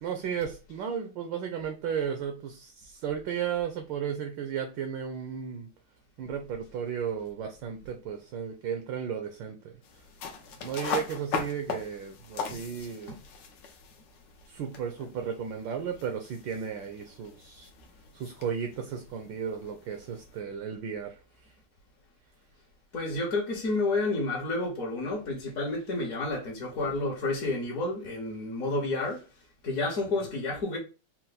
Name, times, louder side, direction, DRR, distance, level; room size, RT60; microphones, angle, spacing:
voice 1, 0.0-5.7 6.2-9.7 10.6-13.2 14.5-17.7 18.1-21.5 30.2-30.3, right 7 dB, 70° right, 1.2 m, -34 dB
sound 1, 9.8-20.4, left 5 dB, 65° left, 1.3 m, -40 dB
voice 2, 22.9-29.2 29.6-30.8, left 2 dB, 50° left, 1.2 m, -30 dB
4.4 x 2.1 x 3.9 m
omnidirectional pair, 2.3 m